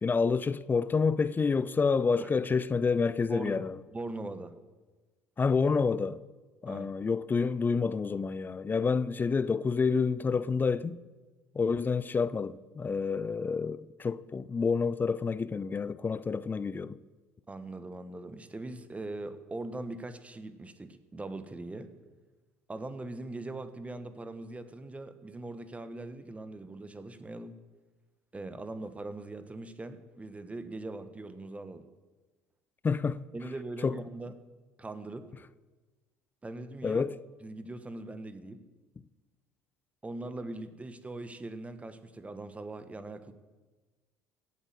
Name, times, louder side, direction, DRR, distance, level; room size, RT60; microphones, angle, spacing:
voice 1, 0.0-3.8 5.4-6.2 6.6-11.0 11.5-17.0 32.8-33.2 33.8-34.0 36.8-37.1, left 5 dB, 25° left, 0.6 m, -28 dB
voice 2, 3.9-4.6 6.7-6.9 17.5-21.9 22.7-27.6 28.3-31.8 33.3-34.4 34.8-35.3 36.4-37.0 37.4-38.6 40.0-43.3, right 2 dB, 20° right, 1.5 m, -41 dB
17.0 x 8.3 x 7.7 m
hypercardioid pair, 60°, 8 cm